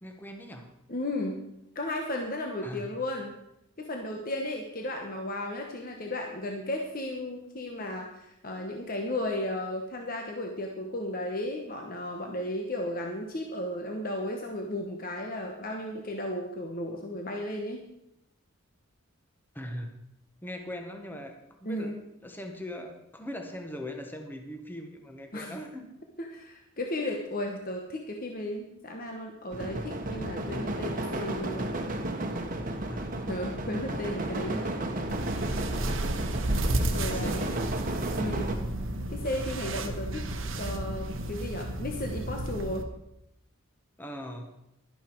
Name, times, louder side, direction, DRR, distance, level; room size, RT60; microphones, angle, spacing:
voice 1, 0.0-0.7 2.6-2.9 19.5-19.9 20.4-21.3 21.6-21.9 22.2-25.9 32.9-33.2 37.1-37.8 44.0-44.5, equal, 10° left, 4 dB, 1.2 m, -40 dB
voice 2, 0.9-1.4 1.7-3.4 3.8-17.8 21.6-21.9 25.3-25.6 26.2-31.7 33.3-34.9 36.7-37.5 38.1-38.6 39.1-40.3 40.6-42.9, left 1 dB, 45° left, 2 dB, 1.2 m, -34 dB
sound 1, 29.5-38.6, right 1 dB, 40° right, 1.2 m, -33 dB
Engine, 32.3-41.5, left 1 dB, 80° left, 4.6 m, -49 dB
sound 2, 35.1-42.8, right 1 dB, 65° right, 1.1 m, -32 dB
12.0 x 11.0 x 4.6 m, 0.84 s
head